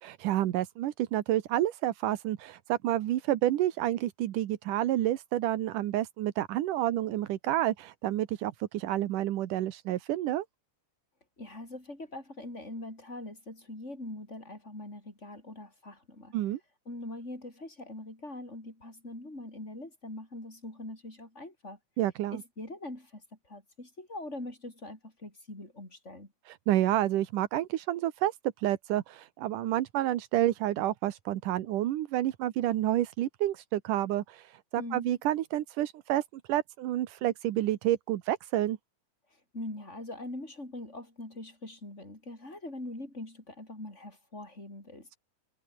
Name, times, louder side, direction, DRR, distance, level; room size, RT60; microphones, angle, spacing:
voice 1, 0.0-10.5 16.3-16.6 22.0-22.4 26.5-36.2 36.5-38.8, right 13 dB, 85° right, 2.8 m, -29 dB
voice 2, 11.4-16.3 16.9-21.8 22.3-23.2 23.5-26.3 34.8-35.1 39.5-45.2, left 2 dB, 20° left, 7.7 m, -42 dB
omnidirectional pair, 3.6 m